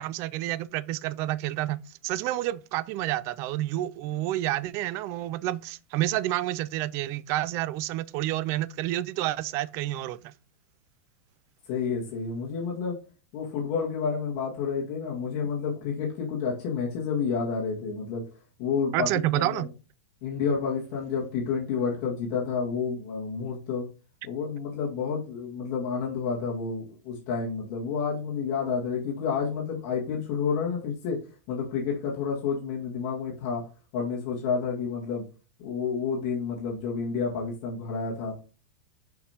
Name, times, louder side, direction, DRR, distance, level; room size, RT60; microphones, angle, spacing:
voice 1, 0.0-10.3 18.9-19.7, right 15 dB, 35° right, 0.3 m, -29 dB
voice 2, 11.7-13.0 13.3-18.2 18.6-19.7 20.2-23.9 24.2-31.2 31.5-33.6 33.9-35.2 35.6-38.4, left 5 dB, 45° left, 1.9 m, -30 dB
6.6 x 5.3 x 2.9 m
supercardioid pair, 150°, 8 cm